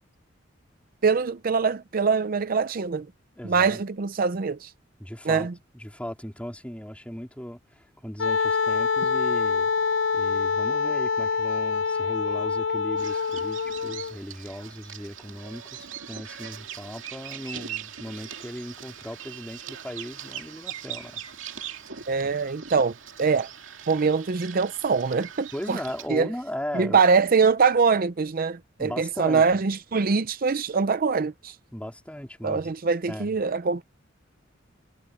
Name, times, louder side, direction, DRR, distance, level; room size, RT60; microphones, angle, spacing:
voice 1, 1.0-3.1 3.4-4.7 5.2-5.5 22.1-23.5 23.9-25.8 26.1-26.3 26.7-31.6 32.4-33.8, right 5 dB, 50° right, 0.5 m, -23 dB
voice 2, 3.4-3.8 5.0-5.5 5.7-21.2 22.2-22.3 25.5-27.0 28.8-29.4 31.7-32.6 33.1-33.4, equal, 5° left, 3.8 m, -37 dB
Wind instrument woodwind instrument, 8.2-14.2, left 5 dB, 70° left, 0.7 m, -25 dB
Bird vocalization bird call bird song, 13.0-26.1, right 9 dB, 85° right, 2.3 m, -41 dB
head